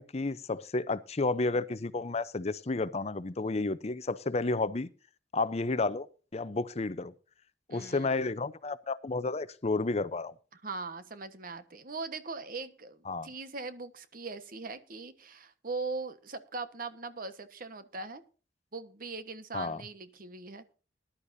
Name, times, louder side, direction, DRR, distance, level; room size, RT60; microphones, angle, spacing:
voice 1, 0.0-4.9 5.3-6.1 6.3-7.1 7.7-10.3 13.1-13.3 19.5-19.8, left 3 dB, 35° left, 0.7 m, -31 dB
voice 2, 7.7-8.2 10.5-18.2 18.7-20.6, right 3 dB, 50° right, 1.3 m, -40 dB
20.0 x 11.5 x 2.7 m
head